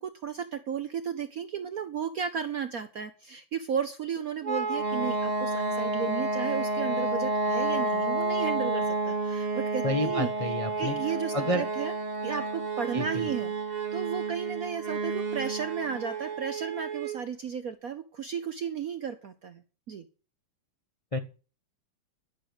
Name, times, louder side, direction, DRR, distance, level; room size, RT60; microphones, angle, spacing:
voice 1, 0.0-11.9 12.2-20.0, right 7 dB, 65° right, 9 dB, 0.8 m, -34 dB
sound 1, 4.4-17.2, right 3 dB, 40° right, 0.6 m, -30 dB
voice 2, 9.8-10.9 11.3-11.7 12.9-13.3 21.1-21.2, left 1 dB, 55° left, 6 dB, 0.3 m, -30 dB
12.0 x 6.5 x 7.0 m, 0.36 s
omnidirectional pair, 2.4 m